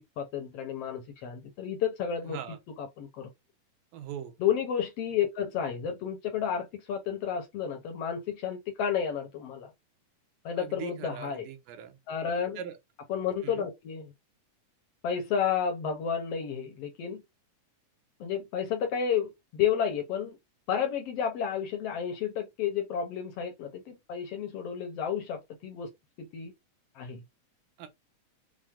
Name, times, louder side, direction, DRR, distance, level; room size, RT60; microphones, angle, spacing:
voice 1, 0.2-2.4 2.8-3.3 4.4-9.7 10.4-11.5 12.1-12.6 13.1-14.1 15.0-17.2 18.2-20.4 20.7-25.9 26.2-26.5 26.9-27.2, left 8 dB, 75° left, 1.4 m, -31 dB
voice 2, 2.2-2.6 3.9-4.3 10.6-12.0 12.6-12.8 13.4-13.7 27.8-27.9, right 9 dB, 85° right, 2.4 m, -41 dB
6.1 x 2.0 x 3.5 m
omnidirectional pair, 3.8 m